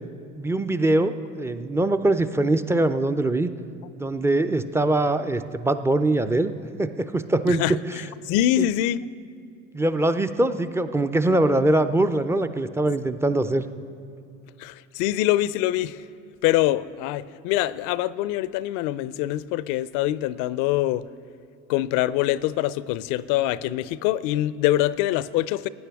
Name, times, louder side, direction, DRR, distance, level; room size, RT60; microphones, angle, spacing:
voice 1, 0.3-3.5 4.0-6.5 6.8-7.6 8.6-8.7 9.7-13.6, right 2 dB, 5° right, 11 dB, 0.4 m, -22 dB
voice 2, 8.2-9.1 14.6-16.0 16.4-21.1 21.7-25.7, left 14 dB, 55° left, 18 dB, 0.5 m, -24 dB
18.0 x 9.5 x 3.5 m, 2.6 s
hypercardioid pair, 75°, 38 cm